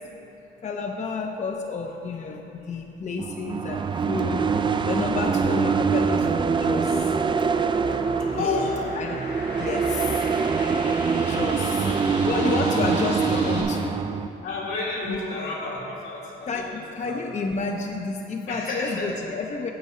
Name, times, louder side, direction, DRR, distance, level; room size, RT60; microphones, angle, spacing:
voice 1, 0.6-4.5 4.9-7.1 8.2-9.2 9.6-10.3 11.3-11.9 12.2-14.0 15.1-15.2 16.5-19.7, left 4 dB, 35° left, 3 dB, 0.5 m, -30 dB
sound 1, 3.2-14.3, right 5 dB, 25° right, 0.3 m, -24 dB
sound 2, 6.7-13.6, left 2 dB, 70° left, 2.2 m, -39 dB
voice 2, 8.4-9.0 10.0-10.2 11.8-12.0 14.4-16.6 17.0-17.2 18.5-19.1, left 3 dB, 85° left, -5 dB, 2.1 m, -31 dB
9.4 x 6.9 x 4.3 m, 2.9 s
cardioid pair, 90°, 20 cm